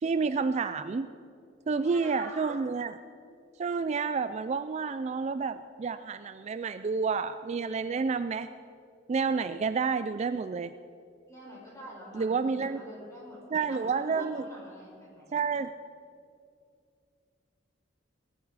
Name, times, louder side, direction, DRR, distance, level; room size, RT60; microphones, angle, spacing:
voice 1, 0.0-1.1 1.7-3.0 3.6-8.5 9.1-10.7 12.1-12.8 13.5-14.5 15.3-15.7, right 5 dB, 35° right, 12 dB, 0.3 m, -29 dB
voice 2, 1.8-2.5 11.3-15.4, equal, 15° left, -4 dB, 4.6 m, -46 dB
18.0 x 12.0 x 4.8 m, 2.4 s
head